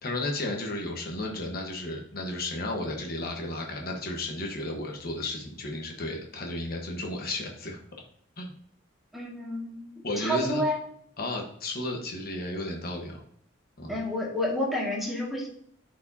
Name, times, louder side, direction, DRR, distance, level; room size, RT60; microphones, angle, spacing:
voice 1, 0.0-7.8 8.4-8.5 10.0-10.6 11.2-13.2 13.8-14.0, left 1 dB, 50° left, 1 dB, 1.2 m, -33 dB
voice 2, 9.1-10.8 13.9-15.5, left 1 dB, ahead, -3 dB, 1.9 m, -30 dB
12.5 x 4.8 x 2.8 m, 0.66 s
head